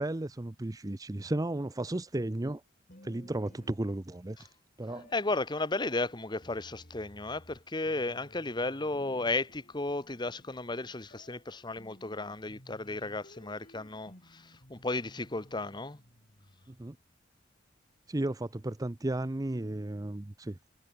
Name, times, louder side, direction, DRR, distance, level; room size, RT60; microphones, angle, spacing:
voice 1, 0.0-2.6 3.0-4.4 4.8-5.1 16.7-17.0 18.1-20.6, right 1 dB, 20° right, 0.6 m, -34 dB
sound 1, 2.9-4.4 4.9-17.1, left 1 dB, 45° left, 5.4 m, -57 dB
voice 2, 5.1-16.0, left 2 dB, 25° left, 1.3 m, -34 dB
head